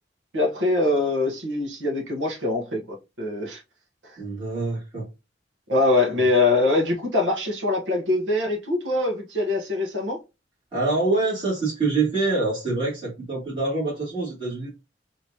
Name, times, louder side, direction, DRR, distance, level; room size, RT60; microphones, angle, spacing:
voice 1, 0.3-3.6 4.1-4.2 5.7-10.2, left 2 dB, 85° right, 1.1 m, -23 dB
voice 2, 4.2-5.1 10.7-14.7, right 3 dB, 30° right, 2.6 m, -25 dB
4.8 x 2.9 x 2.8 m
head